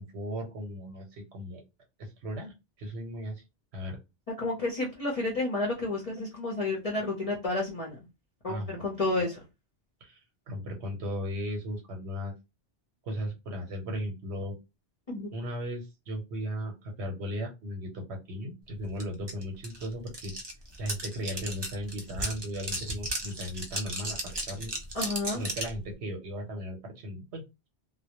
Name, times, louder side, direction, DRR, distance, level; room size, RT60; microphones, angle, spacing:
voice 1, 0.0-1.6 2.0-3.4 3.7-4.0 8.5-9.2 10.0-12.3 13.0-14.6 15.3-20.3 20.8-24.7 25.3-27.4, equal, 75° right, 2 dB, 1.0 m, -36 dB
voice 2, 4.4-8.0 8.4-9.4 15.1-15.3 24.9-25.4, left 2 dB, 40° left, -2 dB, 0.6 m, -31 dB
sound 1, 19.0-19.1 19.3-25.8, right 1 dB, 40° right, 0.4 m, -35 dB
2.1 x 2.1 x 2.8 m, 0.24 s
omnidirectional pair, 1.1 m